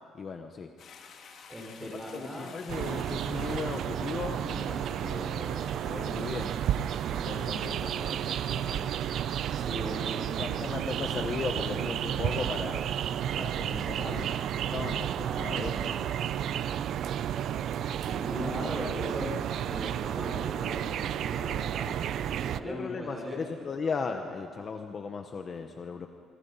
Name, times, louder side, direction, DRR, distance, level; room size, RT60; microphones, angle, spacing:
voice 1, 0.1-0.7 1.8-8.9 10.0-10.1 10.4-12.8 13.4-14.3 14.7-15.7 22.6-26.1, left 5 dB, 30° left, 5 dB, 1.0 m, -37 dB
Toilet flush, 0.8-8.7, left 6 dB, 50° left, 2.4 m, -53 dB
voice 2, 1.5-2.5 6.0-6.1 9.5-10.6 10.9-11.3 13.8-14.3 15.2-16.0 17.7-19.3 19.6-21.9 22.4-23.4, equal, 10° right, 0 dB, 5.1 m, -39 dB
sound 1, 2.7-22.6, right 10 dB, 55° right, 0.6 m, -32 dB
25.5 x 25.5 x 5.6 m, 2.2 s
cardioid pair, 175°, 0 cm